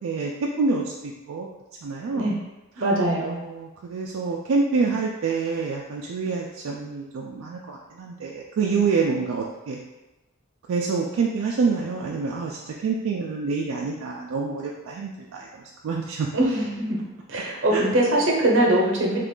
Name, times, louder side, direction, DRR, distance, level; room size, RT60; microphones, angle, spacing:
voice 1, 0.0-1.5 1.8-2.4 2.8-2.9 3.2-9.8 10.7-16.3 17.7-17.9, right 4 dB, 80° right, -1 dB, 0.3 m, -27 dB
voice 2, 2.8-3.4 16.3-16.8 17.3-19.2, right 1 dB, 60° right, -2 dB, 0.8 m, -21 dB
3.0 x 2.4 x 3.6 m, 1.1 s
head